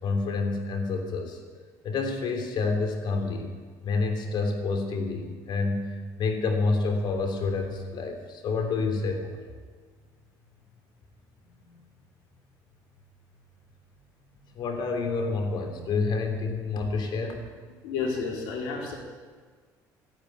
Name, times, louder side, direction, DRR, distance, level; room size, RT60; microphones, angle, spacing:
voice 1, 0.0-1.4 1.8-3.5 3.8-9.4 11.5-11.7 14.5-17.4, left 3 dB, 60° left, 4 dB, 3.0 m, -28 dB
voice 2, 17.8-19.0, left 5 dB, 85° left, 0 dB, 3.8 m, -31 dB
12.5 x 10.5 x 9.3 m, 1.5 s
supercardioid pair, 75°, 9 cm